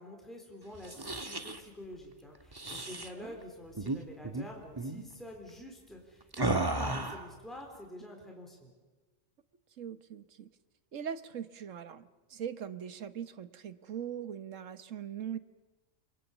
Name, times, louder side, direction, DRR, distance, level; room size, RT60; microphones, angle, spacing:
voice 1, 0.0-8.7, left 1 dB, ahead, 1 dB, 3.9 m, -48 dB
sound 1, 0.7-1.6 2.5-3.1 3.7-4.5 4.8-5.0 6.3-7.3, right 2 dB, 20° right, 1.4 m, -34 dB
voice 2, 2.9-3.4 9.8-10.5 10.9-15.4, right 8 dB, 75° right, 12 dB, 1.5 m, -41 dB
29.0 x 22.5 x 7.3 m, 1.2 s
omnidirectional pair, 1.3 m